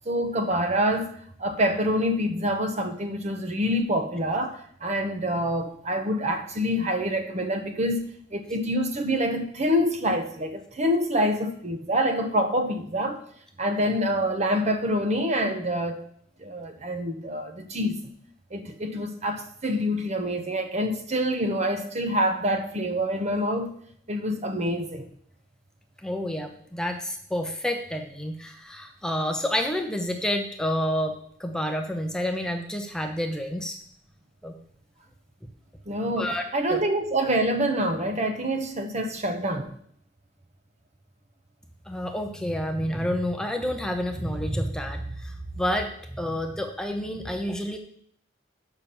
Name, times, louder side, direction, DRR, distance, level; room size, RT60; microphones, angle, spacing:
voice 1, 0.0-1.1 1.4-13.2 13.6-16.0 16.4-18.0 18.5-23.7 24.1-25.1 35.9-39.7, equal, 40° right, 6 dB, 1.0 m, -26 dB
voice 2, 26.0-33.8 34.4-34.5 36.2-36.8 41.9-47.8, equal, 5° left, 4 dB, 0.7 m, -29 dB
7.0 x 5.9 x 7.0 m, 0.64 s
head